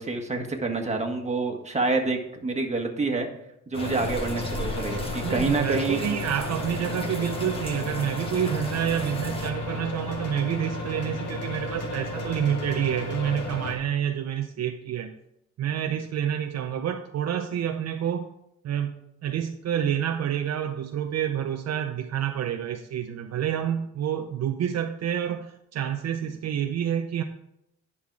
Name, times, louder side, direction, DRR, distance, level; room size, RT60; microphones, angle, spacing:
voice 1, 0.0-3.3 3.7-6.0, right 3 dB, 20° right, 2 dB, 1.7 m, -27 dB
sound 1, 3.7-13.7, left 2 dB, 80° left, 1.9 m, -33 dB
sound 2, 3.7-9.5, left 1 dB, 20° left, 1.5 m, -36 dB
voice 2, 5.2-15.1 15.6-18.3 18.6-18.9 19.2-27.2, right 9 dB, 60° right, 6 dB, 0.7 m, -28 dB
10.5 x 5.6 x 4.7 m, 0.80 s
cardioid pair, 90°, 30 cm